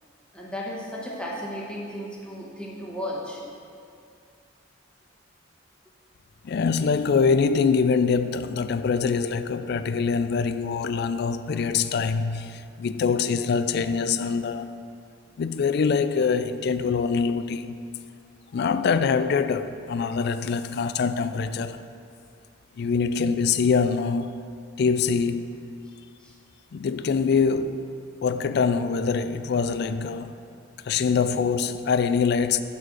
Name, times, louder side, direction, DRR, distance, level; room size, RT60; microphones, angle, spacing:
voice 1, 0.3-3.4 26.2-26.3, equal, 5° left, 1.1 m, -34 dB
voice 2, 6.4-14.8 15.4-17.8 18.5-21.9 22.8-24.5 24.8-25.6 26.7-27.8 28.2-30.3 30.8-32.6, left 5 dB, 55° left, 0.3 m, -24 dB
9.5 x 4.1 x 6.3 m
head